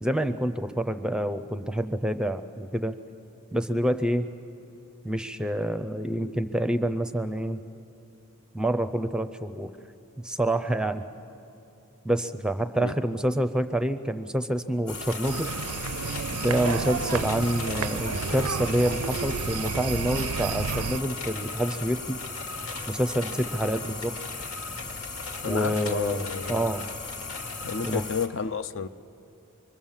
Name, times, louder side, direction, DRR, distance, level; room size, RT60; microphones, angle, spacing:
voice 1, 0.0-3.0 3.5-4.3 5.0-7.6 8.5-9.7 10.2-11.0 12.0-15.5 16.3-22.2 22.9-24.1 25.4-26.9 27.8-28.0, right 1 dB, 5° right, 0.5 m, -27 dB
sound 1, 14.9-28.3, left 3 dB, 85° left, 2.1 m, -36 dB
sound 2, 15.2-21.0, right 6 dB, 90° right, 0.5 m, -31 dB
voice 2, 25.4-26.7 27.6-28.9, left 5 dB, 60° left, 0.5 m, -31 dB
25.0 x 23.0 x 7.3 m
head